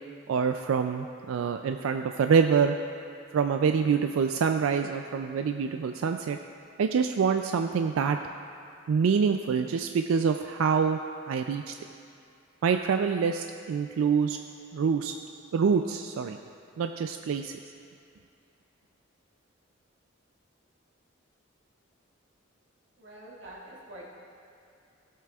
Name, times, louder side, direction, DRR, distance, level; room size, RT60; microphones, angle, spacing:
voice 1, 0.3-2.8 3.3-6.4 6.8-8.2 8.9-11.0 11.3-11.7 12.6-14.4 14.7-15.1 15.5-16.4 16.8-17.5, right 6 dB, 90° right, 6 dB, 0.3 m, -26 dB
voice 2, 23.0-24.1, right 1 dB, 65° right, -5 dB, 1.7 m, -46 dB
16.0 x 7.5 x 2.4 m, 2.6 s
head